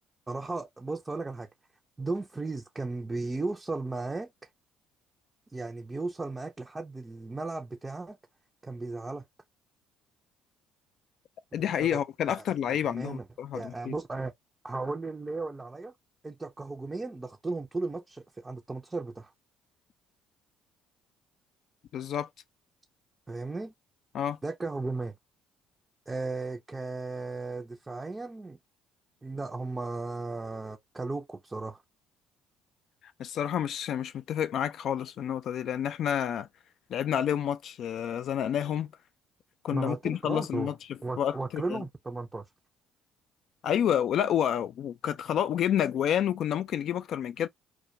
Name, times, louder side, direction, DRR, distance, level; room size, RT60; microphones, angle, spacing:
voice 1, 0.3-1.5 2.0-4.3 5.5-8.2 8.6-9.2 11.8-12.0 12.3-12.4 12.9-13.2 13.5-14.3 14.6-15.9 16.2-19.3 23.3-23.7 24.4-25.1 26.1-28.6 29.2-31.8 39.7-40.7 41.0-42.4, right 3 dB, 20° right, 0.5 m, -35 dB
voice 2, 11.5-14.0 21.9-22.3 24.1-24.4 33.2-36.5 36.9-38.9 39.6-41.8 43.6-47.5, left 9 dB, 60° left, 0.3 m, -29 dB
2.2 x 2.2 x 2.7 m
hypercardioid pair, 55°, 0 cm